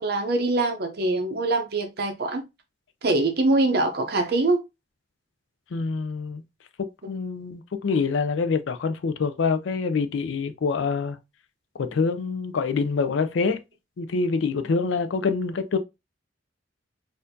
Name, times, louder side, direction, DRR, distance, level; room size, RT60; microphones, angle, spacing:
voice 1, 0.0-2.4 3.0-4.6, right 2 dB, 55° right, 0.6 m, -23 dB
voice 2, 5.7-6.4 7.1-11.2 11.8-13.6 14.0-15.8, left 4 dB, 75° left, 0.4 m, -25 dB
4.1 x 2.5 x 2.6 m
head